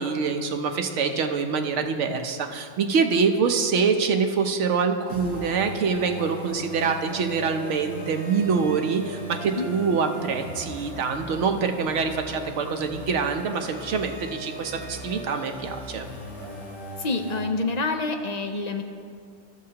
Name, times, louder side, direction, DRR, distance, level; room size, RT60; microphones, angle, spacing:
voice 1, 0.0-16.1, right 5 dB, 80° right, 5 dB, 1.0 m, -25 dB
sound 1, 5.1-17.4, right 1 dB, 70° left, 1.8 m, -39 dB
voice 2, 17.0-18.8, left 3 dB, 50° left, 5 dB, 0.5 m, -27 dB
15.0 x 6.4 x 2.8 m, 2.2 s
omnidirectional pair, 1.2 m